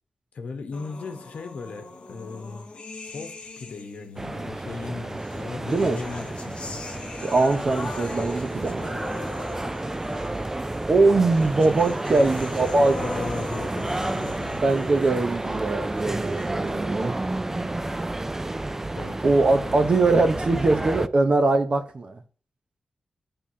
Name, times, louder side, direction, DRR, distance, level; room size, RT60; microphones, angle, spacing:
voice 1, 0.3-2.7 3.0-6.8 12.1-14.6 18.9-19.3 19.6-19.9, left 4 dB, 85° left, 1.0 m, -38 dB
sound 1, 0.7-4.2 5.2-16.7, left 3 dB, 50° left, 0.9 m, -40 dB
sound 2, 4.2-21.1, right 2 dB, 20° right, 0.3 m, -31 dB
voice 2, 5.7-6.0 7.2-9.0 10.9-13.0 14.6-17.1 17.5-17.9 19.2-22.2, right 3 dB, 50° right, 0.9 m, -22 dB
10.0 x 3.5 x 2.8 m
wide cardioid pair, 85°, 2 cm